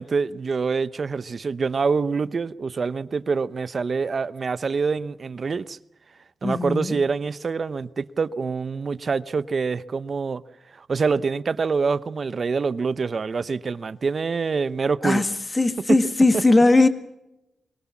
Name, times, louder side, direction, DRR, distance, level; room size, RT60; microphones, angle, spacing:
voice 1, 0.0-5.8 6.4-10.4 10.7-15.2, right 5 dB, 45° right, 0.8 m, -26 dB
voice 2, 6.4-7.0 15.0-16.9, left 2 dB, 20° left, 1.9 m, -19 dB
23.0 x 22.5 x 7.2 m
wide cardioid pair, 120°, 0 cm